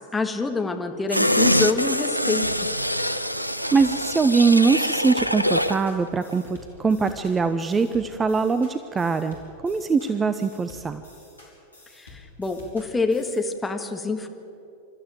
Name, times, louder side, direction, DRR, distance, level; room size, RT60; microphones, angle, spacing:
voice 1, 0.0-2.7 11.9-14.3, left 3 dB, 10° left, 5 dB, 1.7 m, -26 dB
sound 1, 1.1-5.8 6.2-6.3, equal, 90° right, 0.6 m, -24 dB
sound 2, 2.4-13.4, left 2 dB, 75° left, 4.9 m, -49 dB
voice 2, 3.7-9.4 9.6-11.0, right 4 dB, 15° right, 11 dB, 0.7 m, -22 dB
28.5 x 13.5 x 7.7 m, 2.7 s
figure-of-eight pair, 90°, 0 cm